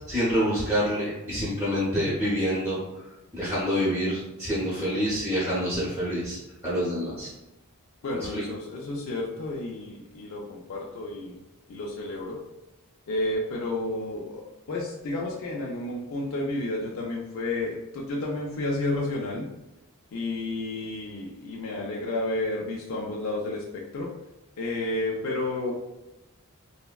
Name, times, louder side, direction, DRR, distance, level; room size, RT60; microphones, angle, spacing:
voice 1, 0.1-2.8 3.3-6.4 6.6-7.3 8.3-8.4, equal, 10° right, -11 dB, 0.8 m, -27 dB
voice 2, 8.0-11.4 11.7-12.4 13.1-14.4 14.7-19.5 20.1-24.1 24.6-25.7, left 2 dB, 65° left, -2 dB, 0.4 m, -31 dB
3.2 x 2.0 x 2.2 m, 1.0 s
head